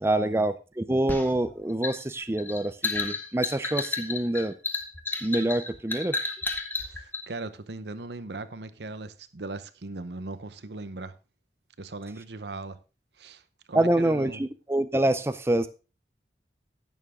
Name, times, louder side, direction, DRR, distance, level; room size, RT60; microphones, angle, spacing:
voice 1, 0.0-4.5 5.2-6.2 13.7-15.7, right 1 dB, 15° right, 0.5 m, -26 dB
sound 1, 1.1-7.2, left 3 dB, 10° left, 1.2 m, -32 dB
voice 2, 6.8-11.1 11.8-12.8 13.2-13.4 13.7-14.4, right 2 dB, 70° right, 0.9 m, -39 dB
11.0 x 9.2 x 3.6 m
head